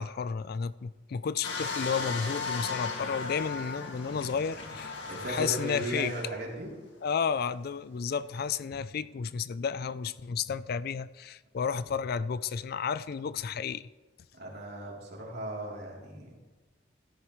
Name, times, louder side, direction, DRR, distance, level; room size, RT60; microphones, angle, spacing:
voice 1, 0.0-4.9 5.3-6.1 7.0-13.9, left 6 dB, 55° left, 16 dB, 0.4 m, -32 dB
sound 1, 1.4-6.4 7.0-7.1, left 4 dB, 80° left, 2.0 m, -36 dB
voice 2, 4.1-4.4 5.1-6.7 14.3-16.4, right 1 dB, 60° right, -3 dB, 3.3 m, -37 dB
14.5 x 13.0 x 3.1 m, 1.3 s
head